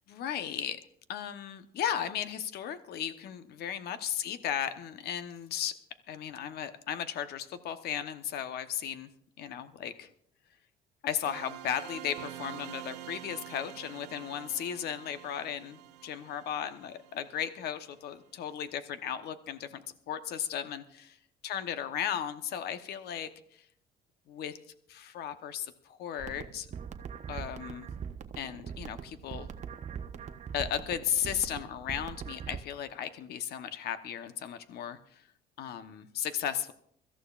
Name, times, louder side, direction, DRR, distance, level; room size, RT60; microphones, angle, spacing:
voice 1, 0.1-0.8 1.1-5.7 6.1-9.1 9.4-10.1 11.0-21.1 21.4-23.3 24.3-24.5 24.9-26.7 27.3-27.9 28.4-29.5 30.5-35.0 35.6-36.7, left 9 dB, 70° left, 10 dB, 1.0 m, -35 dB
sound 1, 11.3-17.9, right 14 dB, 90° right, 0.9 m, -46 dB
sound 2, 26.2-32.6, right 7 dB, 45° right, 0.9 m, -42 dB
24.5 x 14.0 x 2.5 m, 0.67 s
cardioid pair, 110°, 17 cm